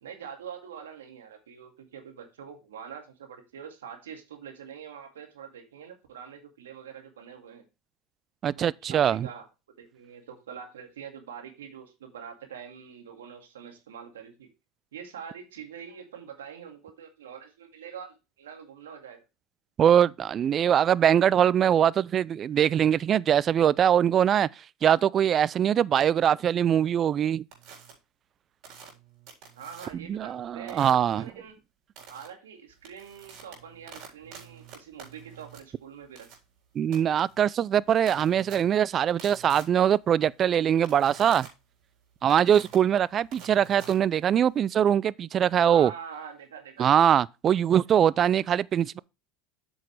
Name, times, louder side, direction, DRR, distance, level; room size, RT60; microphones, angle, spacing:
voice 1, 0.0-7.7 8.6-9.5 9.8-14.5 14.9-19.2 29.6-31.6 32.1-36.4 45.6-47.0, right 7 dB, 85° right, 2.0 m, -44 dB
voice 2, 8.4-9.3 19.8-24.5 24.8-27.4 30.1-31.3 36.8-41.5 42.2-45.9 46.8-49.0, right 9 dB, 40° right, 0.4 m, -22 dB
sound 1, 27.5-27.9 28.6-30.1 30.7-31.1 31.9-32.3 32.7-44.6, right 7 dB, 60° right, 3.9 m, -49 dB
8.4 x 6.3 x 3.3 m
hypercardioid pair, 90°, 0 cm